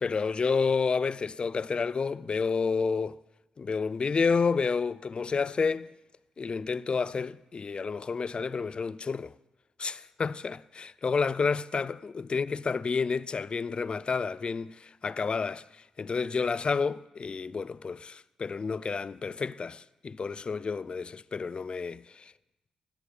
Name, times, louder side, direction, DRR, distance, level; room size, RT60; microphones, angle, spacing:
voice 1, 0.0-3.2 3.6-5.9 6.4-9.3 9.8-15.6 16.0-22.3, left 5 dB, 45° left, 0.4 m, -30 dB
17.5 x 7.9 x 3.3 m
hypercardioid pair, 45°, 2 cm